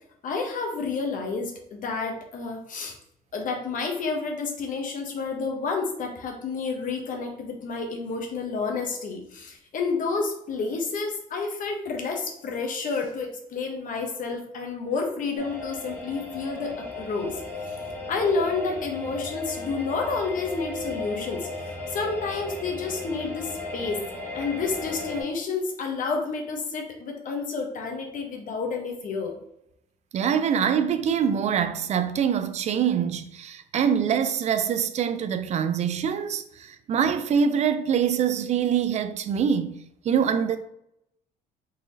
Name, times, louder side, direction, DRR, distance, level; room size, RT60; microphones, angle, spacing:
voice 1, 0.2-2.9 3.3-17.4 18.1-21.5 21.9-24.0 24.3-29.4, left 4 dB, 50° left, 0.9 m, -30 dB
sound 1, 15.4-25.2, left 2 dB, 10° left, 1.2 m, -36 dB
voice 2, 30.1-39.8 40.0-40.6, right 7 dB, 40° right, 0.4 m, -24 dB
3.9 x 3.0 x 2.6 m
cardioid pair, 110°, 17 cm